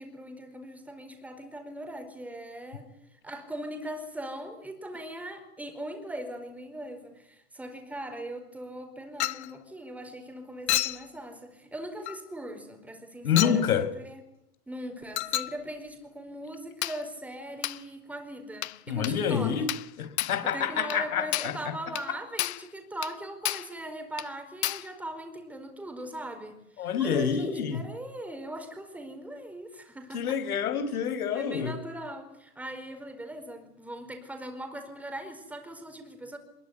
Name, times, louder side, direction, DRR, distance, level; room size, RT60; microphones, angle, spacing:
voice 1, 0.0-2.9 3.2-14.2 14.7-19.6 20.4-30.4 31.3-36.4, right 1 dB, 5° right, 6 dB, 4.6 m, -40 dB
Chink clink, 9.2-9.5 10.7-11.1 12.1-12.2 13.4-13.6 15.2-15.6 16.8-17.0 17.6-17.8 18.6-18.8 19.0-19.2 19.7-19.9 20.2-20.4 20.9-21.0 21.3-21.6 22.0-22.1 22.4-22.7 23.0-23.2 23.5-23.7 24.2-24.3 24.6-24.9, left 15 dB, 45° left, 1.1 m, -31 dB
voice 2, 13.2-13.9 18.9-19.7 20.0-21.5 26.8-27.8 30.1-31.7, left 7 dB, 70° left, 10 dB, 5.4 m, -27 dB
24.0 x 22.0 x 9.5 m, 0.83 s
hypercardioid pair, 155°, 45 cm